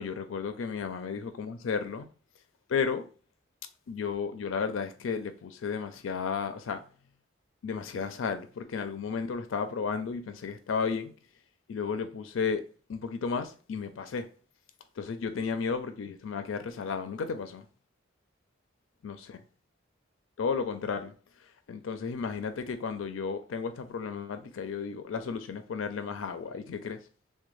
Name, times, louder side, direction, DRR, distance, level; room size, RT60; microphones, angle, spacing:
voice 1, 0.0-2.1 2.7-3.1 3.9-6.8 7.6-11.1 11.7-12.6 12.9-14.3 15.0-17.7 19.0-19.4 20.4-21.1 21.7-27.0, left 5 dB, 85° left, 0.4 m, -33 dB
3.4 x 2.2 x 3.1 m
head